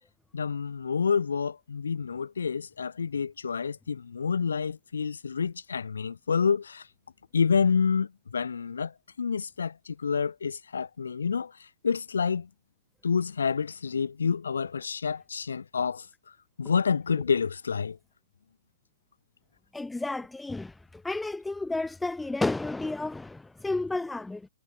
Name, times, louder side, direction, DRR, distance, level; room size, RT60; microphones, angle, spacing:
voice 1, 0.3-6.9 7.3-12.5 13.0-16.1 16.6-18.0, left 6 dB, 75° left, 6.1 m, -28 dB
voice 2, 19.7-24.5, left 2 dB, 5° left, 1.2 m, -32 dB
hypercardioid pair, 135°, 0 cm